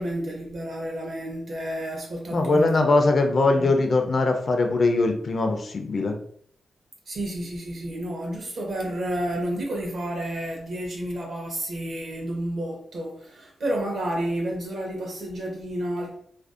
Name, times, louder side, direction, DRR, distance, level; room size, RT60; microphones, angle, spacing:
voice 1, 0.0-2.8 3.5-3.7 7.1-16.2, right 1 dB, 60° right, 0 dB, 0.7 m, -30 dB
voice 2, 2.3-6.1, left 3 dB, 45° left, 4 dB, 0.3 m, -21 dB
2.5 x 2.1 x 2.4 m, 0.64 s
wide cardioid pair, 130°, 0 cm